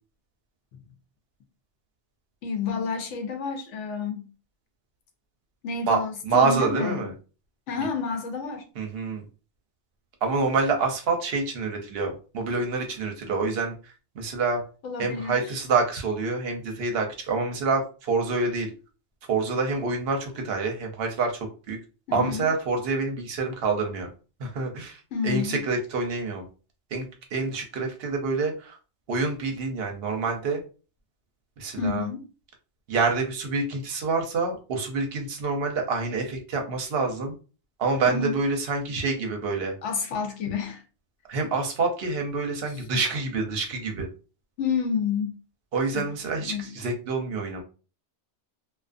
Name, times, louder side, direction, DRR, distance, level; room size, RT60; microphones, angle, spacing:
voice 1, 2.4-4.3 5.6-7.1 7.7-8.6 14.8-15.4 22.1-22.5 25.1-25.6 31.8-32.3 38.1-38.4 39.8-40.8 42.7-42.8 44.6-45.3 45.9-46.7, left 5 dB, 80° left, 0.9 m, -29 dB
voice 2, 6.2-7.1 8.8-9.2 10.2-14.6 15.0-18.7 19.3-21.3 21.7-21.8 22.1-24.1 24.4-26.5 26.9-28.7 29.1-30.6 31.6-32.1 32.9-37.3 37.8-39.7 41.3-44.1 45.7-47.6, right 4 dB, 60° right, 0.8 m, -27 dB
2.4 x 2.3 x 2.4 m
omnidirectional pair, 1.2 m